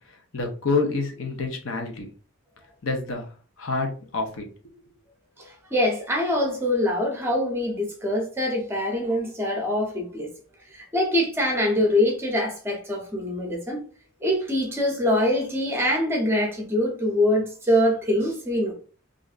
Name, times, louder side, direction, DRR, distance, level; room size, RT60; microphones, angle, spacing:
voice 1, 0.3-2.1 2.8-3.3 3.6-4.4, left 3 dB, 65° left, 0.8 m, -27 dB
voice 2, 5.4-10.3 10.7-13.8 14.2-18.7, left 1 dB, 10° right, 0.7 m, -24 dB
3.3 x 2.5 x 2.4 m
head